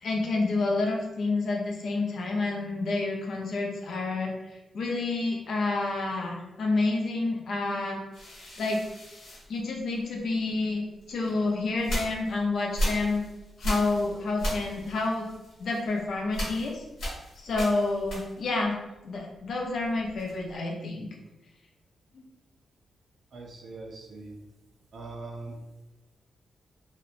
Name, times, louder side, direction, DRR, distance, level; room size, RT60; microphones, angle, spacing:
voice 1, 0.0-8.0 8.6-8.8 9.5-13.2 13.6-15.3 15.6-16.8 17.4-18.8 19.0-21.1 22.1-22.2, left 3 dB, 60° left, 0 dB, 0.4 m, -29 dB
sound 1, 8.1-10.3 11.0-18.6 18.9-20.6, equal, 80° left, 1.1 m, -36 dB
voice 2, 23.3-24.4 24.9-25.6, right 3 dB, 50° right, 0 dB, 0.4 m, -41 dB
2.8 x 2.0 x 2.4 m, 1.0 s
wide cardioid pair, 160°, 0 cm